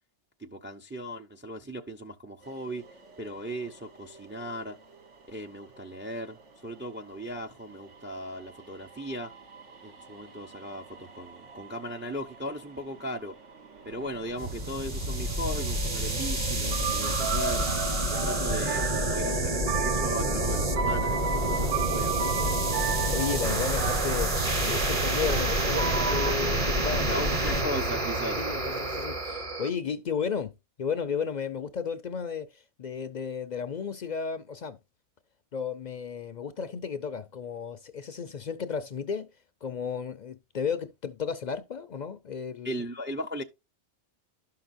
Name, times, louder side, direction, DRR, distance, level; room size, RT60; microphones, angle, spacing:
voice 1, 0.4-2.8 3.2-4.8 5.3-9.3 9.8-13.3 13.8-17.7 18.2-22.2 27.1-28.4 42.6-43.4, equal, 15° right, 0.4 m, -37 dB
sound 1, 2.4-19.4, right 2 dB, 90° right, 1.4 m, -46 dB
sound 2, 13.9-26.3, right 7 dB, 65° right, 0.8 m, -34 dB
sound 3, 14.4-29.7, right 1 dB, 30° right, 1.0 m, -28 dB
voice 2, 23.0-27.2 27.5-27.7 28.4-30.5 30.8-34.8 35.5-39.3 39.6-42.8, left 6 dB, 55° left, 0.5 m, -33 dB
12.0 x 5.8 x 2.5 m
omnidirectional pair, 1.2 m